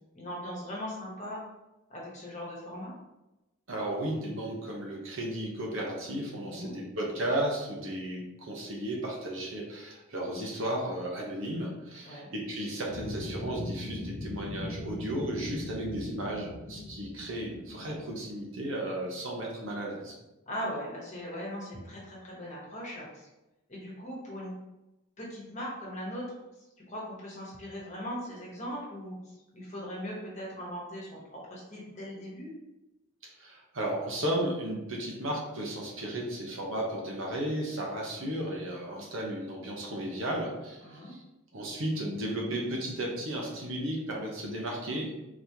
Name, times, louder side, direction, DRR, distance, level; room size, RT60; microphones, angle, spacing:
voice 1, 0.1-1.4 1.9-2.9 6.4-6.8 12.0-12.3 20.5-23.3 23.7-24.5 25.2-26.3 26.9-32.5 40.8-41.1, equal, 35° left, -4 dB, 1.2 m, -39 dB
voice 2, 3.7-20.2 33.4-41.2 41.5-45.1, right 1 dB, 65° right, -2 dB, 0.9 m, -34 dB
sound 1, 12.9-18.4, left 2 dB, 50° left, 0.5 m, -40 dB
4.0 x 3.1 x 2.8 m, 0.98 s
head